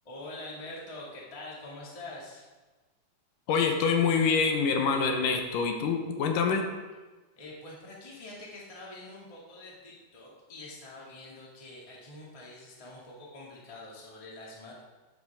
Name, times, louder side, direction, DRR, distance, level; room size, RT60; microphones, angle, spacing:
voice 1, 0.0-2.5 7.4-14.7, left 2 dB, 15° left, -4 dB, 1.2 m, -45 dB
voice 2, 3.5-6.6, left 5 dB, 80° left, 4 dB, 2.5 m, -26 dB
11.5 x 8.0 x 3.5 m, 1.2 s
omnidirectional pair, 3.9 m